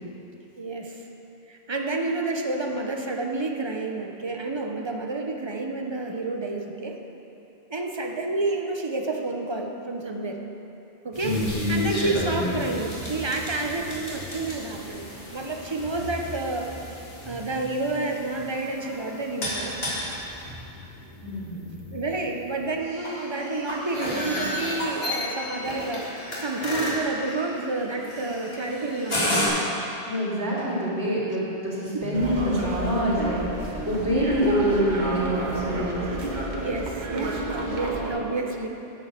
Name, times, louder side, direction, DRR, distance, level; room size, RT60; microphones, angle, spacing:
voice 1, 0.6-1.1 1.5-7.0 7.7-10.4 11.0-16.7 17.3-19.8 21.9-29.5 31.9-32.4 36.4-38.7, right 3 dB, 25° right, 2 dB, 0.8 m, -30 dB
sound 1, 11.1-29.5, left 1 dB, 65° left, 2.5 m, -32 dB
voice 2, 21.2-21.7 30.1-36.0, equal, 80° right, -7 dB, 3.2 m, -26 dB
sound 2, 32.1-38.1, right 2 dB, 45° right, 1.3 m, -31 dB
9.5 x 8.0 x 6.6 m, 2.8 s
omnidirectional pair, 1.1 m